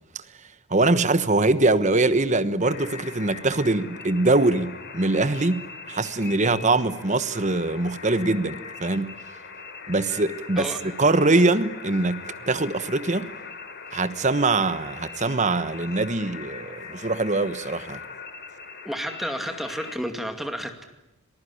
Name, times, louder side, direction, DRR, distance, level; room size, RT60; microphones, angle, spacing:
voice 1, 0.7-5.6 5.9-9.1 9.9-13.3 13.9-18.0, right 2 dB, 35° right, 1.2 m, -23 dB
sound 1, 2.6-20.0, left 5 dB, 50° left, 3.3 m, -41 dB
voice 2, 18.8-20.9, equal, ahead, 2.3 m, -31 dB
26.5 x 20.0 x 9.9 m
head